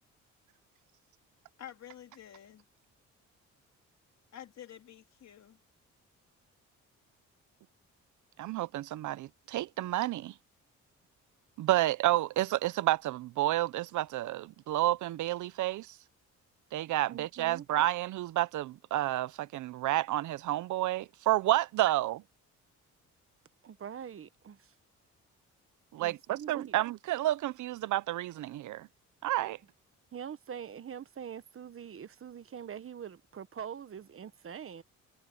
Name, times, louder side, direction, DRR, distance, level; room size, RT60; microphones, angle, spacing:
voice 1, 1.6-2.6 4.3-5.6, left 11 dB, 60° left, 2.8 m, -49 dB
voice 2, 8.4-10.3 11.6-15.9 16.7-22.2 25.9-28.9 29.2-29.6, right 15 dB, 75° right, 0.8 m, -30 dB
voice 3, 17.1-17.7 23.6-24.7 26.0-26.7 30.1-34.8, right 8 dB, 45° right, 1.3 m, -44 dB
cardioid pair, 90°, 30 cm